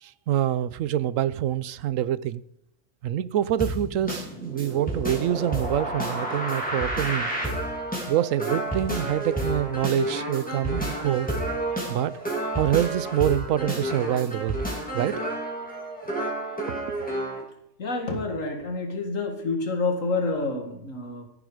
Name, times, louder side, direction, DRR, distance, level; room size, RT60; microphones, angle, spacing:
voice 1, 0.0-2.4 3.0-7.3 8.1-11.3 11.9-12.2 12.5-14.6 14.9-15.2 16.7-16.8, right 11 dB, 80° right, 1.0 m, -26 dB
Happy Country Tune, 3.6-17.4, right 1 dB, 5° left, 3.0 m, -30 dB
voice 2, 17.8-21.3, left 3 dB, 80° left, 2.5 m, -28 dB
13.5 x 10.0 x 4.9 m
omnidirectional pair, 1.3 m